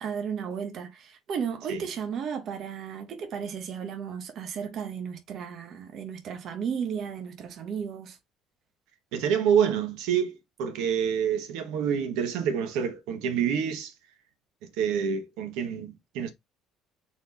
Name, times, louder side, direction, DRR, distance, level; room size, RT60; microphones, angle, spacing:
voice 1, 0.0-8.2, right 7 dB, 40° right, 1.0 m, -34 dB
voice 2, 9.1-13.9 14.6-16.3, right 8 dB, 85° right, 1.0 m, -27 dB
4.3 x 2.9 x 4.0 m
cardioid pair, 165°, 0 cm